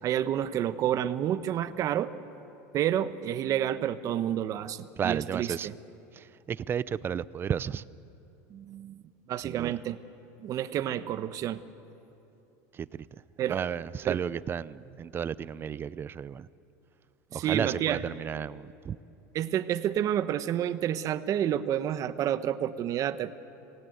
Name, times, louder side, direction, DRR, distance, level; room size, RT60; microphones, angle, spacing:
voice 1, 0.0-2.1 2.7-5.7 8.5-10.0 10.4-11.6 13.4-13.6 14.1-14.2 17.3-18.0 19.3-23.3, right 11 dB, 40° right, 12 dB, 1.1 m, -29 dB
voice 2, 5.0-5.7 6.1-7.8 9.4-9.7 12.7-13.1 13.5-16.5 17.3-19.0, right 8 dB, 25° right, 18 dB, 0.5 m, -33 dB
25.0 x 19.0 x 9.4 m, 2.8 s
supercardioid pair, 125°, 9 cm